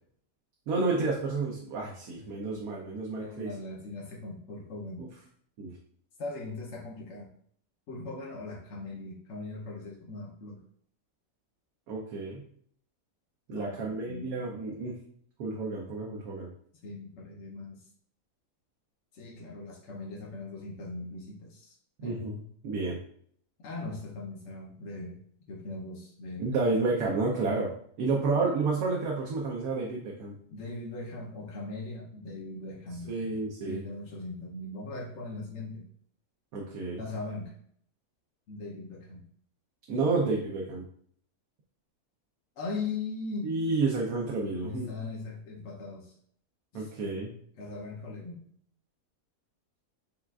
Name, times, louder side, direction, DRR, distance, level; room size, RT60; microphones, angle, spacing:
voice 1, 0.7-3.5 5.0-5.1 5.6-5.7 11.9-12.4 13.5-14.9 15.4-16.5 22.0-23.0 26.4-27.7 28.0-30.3 33.1-33.8 36.5-37.0 39.9-40.8 43.4-44.9 46.7-47.3, right 3 dB, 80° right, -2 dB, 1.2 m, -30 dB
voice 2, 3.1-5.1 6.2-7.3 7.9-10.6 13.5-14.3 16.8-17.9 19.1-21.8 22.0-22.2 23.6-25.2 25.5-26.5 30.5-33.1 33.6-35.9 37.0-37.5 38.5-39.2 42.6-43.5 44.6-46.2 46.7-46.9 47.6-48.5, left 3 dB, 60° left, -3 dB, 0.9 m, -39 dB
7.1 x 2.4 x 2.3 m, 0.62 s
omnidirectional pair, 1.5 m